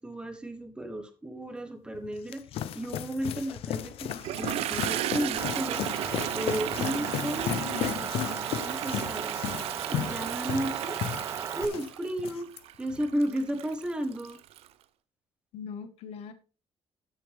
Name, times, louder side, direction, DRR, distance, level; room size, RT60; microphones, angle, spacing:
voice 1, 0.0-5.9 6.3-8.1 8.4-9.4 9.9-11.0 11.5-12.5 12.8-14.4, right 1 dB, 10° right, 1.3 m, -34 dB
sound 1, 1.9-11.9 12.2-12.6, left 10 dB, 70° left, 0.6 m, -35 dB
Toilet flush, 4.1-14.7, right 12 dB, 75° right, 0.7 m, -35 dB
Motor vehicle (road) / Engine, 5.4-11.7, right 7 dB, 30° right, 0.5 m, -36 dB
voice 2, 7.0-8.1 15.5-16.3, left 7 dB, 85° left, 1.6 m, -42 dB
13.0 x 6.5 x 3.5 m
cardioid pair, 165°, 10 cm